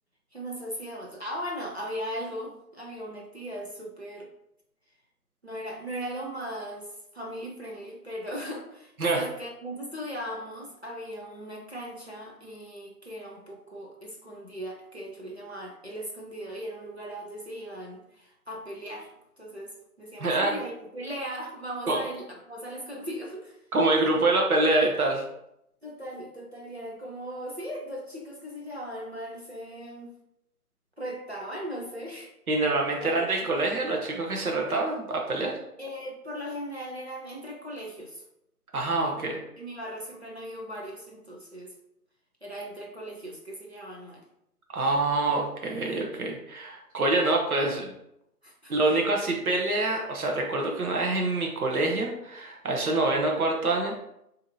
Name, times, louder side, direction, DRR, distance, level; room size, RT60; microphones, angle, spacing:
voice 1, 0.3-4.3 5.4-6.9 7.1-19.1 19.4-23.6 24.1-24.2 25.8-30.1 31.0-32.3 33.0-33.1 33.5-33.7 35.8-38.2 39.0-41.7 42.4-44.2 45.1-45.3 48.4-48.9, equal, 45° right, -2 dB, 0.5 m, -38 dB
voice 2, 20.2-20.5 21.9-22.0 23.7-25.2 32.5-35.6 38.7-39.4 44.7-47.9 48.7-53.9, right 2 dB, 65° right, 1 dB, 0.8 m, -26 dB
3.7 x 2.8 x 2.6 m, 0.80 s
figure-of-eight pair, 170°, 47 cm